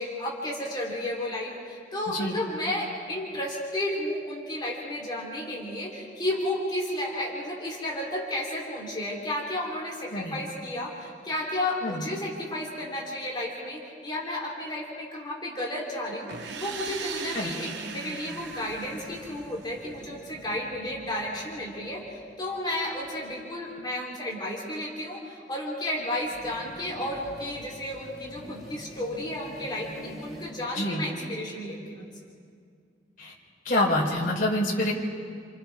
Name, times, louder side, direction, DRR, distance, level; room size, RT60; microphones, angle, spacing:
voice 1, 0.0-32.1, left 1 dB, 25° left, -3 dB, 3.5 m, -32 dB
sound 1, 16.3-20.0, right 5 dB, 70° right, 1.0 m, -39 dB
sound 2, 18.2-23.2 26.2-30.5, equal, ahead, 6.9 m, -47 dB
voice 2, 33.6-34.9, left 1 dB, 50° left, -3 dB, 4.2 m, -26 dB
29.0 x 28.0 x 3.6 m, 2.2 s
head